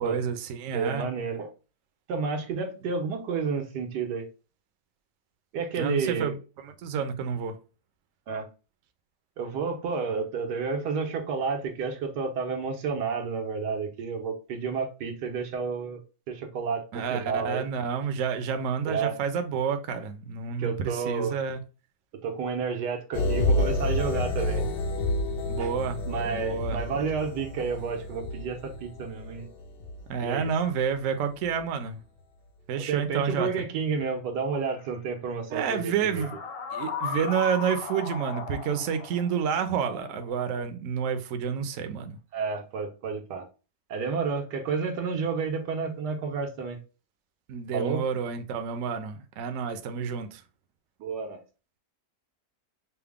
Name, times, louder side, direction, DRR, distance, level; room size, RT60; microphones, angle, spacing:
voice 1, 0.0-1.1 5.8-6.4 6.6-7.6 16.9-21.6 25.5-27.1 30.1-32.0 32.7-33.5 35.5-36.4 36.7-42.2 47.5-50.4, right 7 dB, 65° right, 0.9 m, -29 dB
voice 2, 0.7-1.5 2.1-4.3 5.5-6.3 8.3-8.5 9.4-16.0 16.3-17.6 18.8-19.2 20.6-21.4 22.2-24.6 25.6-25.7 26.1-29.5 30.2-30.5 32.8-36.2 42.3-43.5 43.9-46.8 47.7-48.0 51.0-51.4, right 5 dB, 85° right, 1.5 m, -30 dB
sound 1, 23.1-31.0 31.4-31.6, left 1 dB, 75° left, 0.5 m, -29 dB
sound 2, 34.7-34.8 36.0-40.6, left 6 dB, 55° left, 1.4 m, -37 dB
5.7 x 2.0 x 3.5 m
omnidirectional pair, 1.8 m